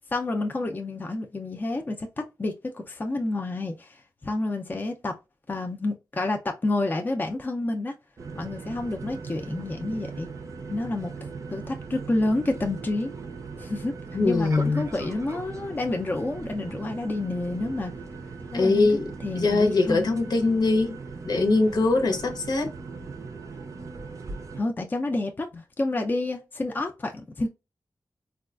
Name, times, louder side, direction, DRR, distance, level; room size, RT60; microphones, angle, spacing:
voice 1, 0.1-5.2 5.5-8.0 8.3-10.3 10.7-13.1 13.6-13.9 14.2-17.9 18.5-18.9 19.2-20.1 24.6-27.5, left 2 dB, 25° left, 0.4 m, -29 dB
sound 1, 8.2-24.6, right 4 dB, 50° right, 0.5 m, -39 dB
voice 2, 14.1-14.9 18.5-21.0 21.2-22.8, left 3 dB, 75° left, 0.8 m, -22 dB
4.0 x 2.3 x 2.3 m
wide cardioid pair, 130°, 7 cm